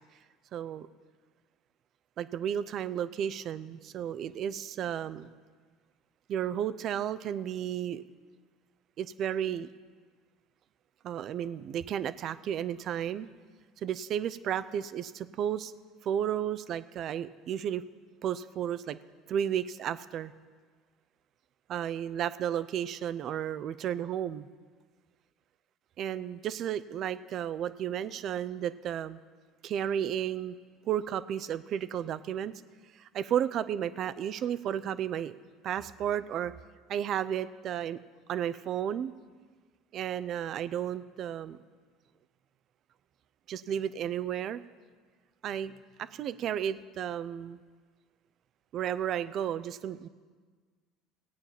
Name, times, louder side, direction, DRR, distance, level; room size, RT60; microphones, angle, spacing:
voice 1, 0.5-0.9 2.2-5.3 6.3-8.0 9.0-9.7 11.0-13.3 13.8-15.7 16.0-17.8 18.2-19.0 19.3-20.3 21.7-24.5 26.0-29.2 29.6-30.6 30.9-32.5 32.9-35.4 35.6-36.5 36.9-38.0 38.3-39.1 39.9-41.6 43.5-44.6 45.4-45.7 46.0-47.6 48.7-50.1, right 9 dB, 50° right, 15 dB, 0.6 m, -33 dB
17.0 x 8.8 x 5.8 m, 1.5 s
supercardioid pair, 85°, 0 cm